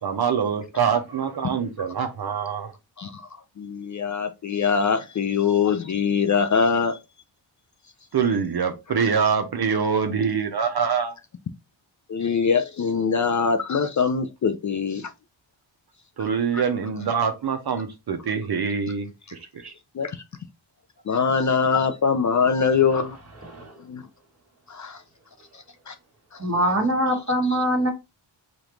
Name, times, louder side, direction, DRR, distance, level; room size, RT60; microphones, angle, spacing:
voice 1, 0.0-2.7 8.1-11.1 16.2-19.7, right 6 dB, 50° right, 0.7 m, -25 dB
voice 2, 3.6-7.0 12.1-15.1 20.0-20.2 21.1-23.2 23.9-24.0 24.7-25.0 25.9-26.0, left 6 dB, 40° left, 0.4 m, -23 dB
voice 3, 23.4-23.7 26.4-27.9, equal, 30° right, 1.5 m, -23 dB
4.9 x 2.5 x 3.0 m
cardioid pair, 95°, 48 cm